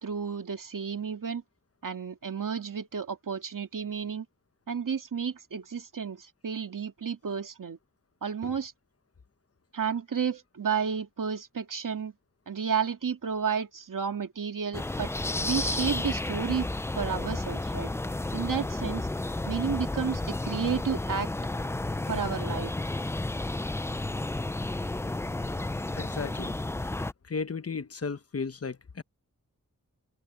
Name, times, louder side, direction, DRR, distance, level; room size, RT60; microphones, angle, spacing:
voice 1, 0.0-1.4 1.8-4.3 4.7-7.8 8.2-8.7 9.7-12.1 12.5-15.1 15.4-16.7 17.0-17.9 18.3-19.1 19.5-21.3 22.1-22.7, right 6 dB, 80° right, 2.3 m, -31 dB
sound 1, 14.7-27.1, left 2 dB, 10° left, 0.3 m, -32 dB
voice 2, 25.9-26.6 27.2-29.0, left 5 dB, 50° left, 1.1 m, -34 dB
open air
wide cardioid pair, 110°, 32 cm